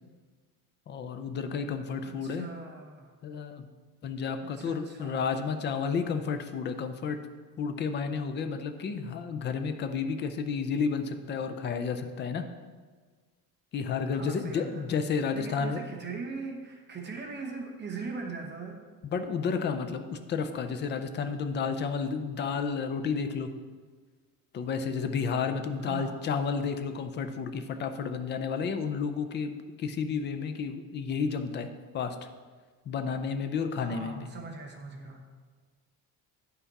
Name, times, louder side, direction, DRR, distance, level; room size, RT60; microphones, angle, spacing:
voice 1, 0.9-2.5 3.2-3.6 4.0-7.2 7.6-12.5 13.7-15.8 19.0-23.5 24.5-29.5 29.8-32.2 32.9-34.3, left 5 dB, 30° left, 8 dB, 0.4 m, -31 dB
voice 2, 2.0-3.1 4.4-5.2 14.1-14.8 15.3-18.8 25.8-26.2 33.8-35.2, right 4 dB, 25° right, 2 dB, 0.9 m, -40 dB
9.6 x 5.8 x 4.0 m, 1.5 s
cardioid pair, 175°, 40 cm